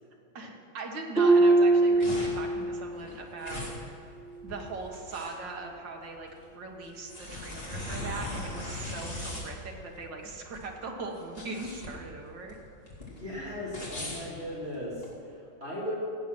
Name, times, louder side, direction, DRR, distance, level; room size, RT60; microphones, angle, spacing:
voice 1, 0.3-3.7 4.4-6.3 6.5-12.6, right 3 dB, 70° right, 1 dB, 2.3 m, -40 dB
Harp, 1.2-2.9 3.3-3.7 4.2-4.4, right 2 dB, ahead, 1.0 m, -23 dB
sound 1, 1.6-15.1, left 1 dB, 30° left, 2.7 m, -40 dB
voice 2, 13.1-14.9 15.6-15.9, equal, 35° right, -6 dB, 3.1 m, -36 dB
16.5 x 9.2 x 6.1 m, 2.6 s
omnidirectional pair, 2.0 m